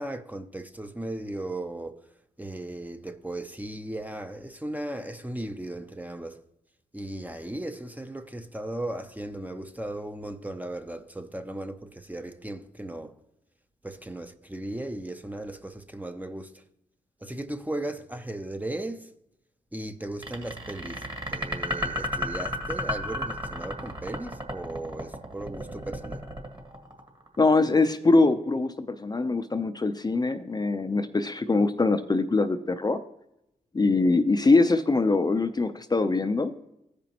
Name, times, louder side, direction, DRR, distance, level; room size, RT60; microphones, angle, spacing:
voice 1, 0.0-2.0 2.4-6.4 6.9-13.2 13.8-16.6 17.2-19.1 19.7-26.2, right 1 dB, 10° right, 0.7 m, -36 dB
sound 1, 20.2-27.4, left 1 dB, 30° right, 1.9 m, -32 dB
voice 2, 27.4-33.0 33.7-36.5, left 3 dB, 25° left, 0.5 m, -23 dB
14.5 x 5.1 x 2.9 m
supercardioid pair, 50°, 16 cm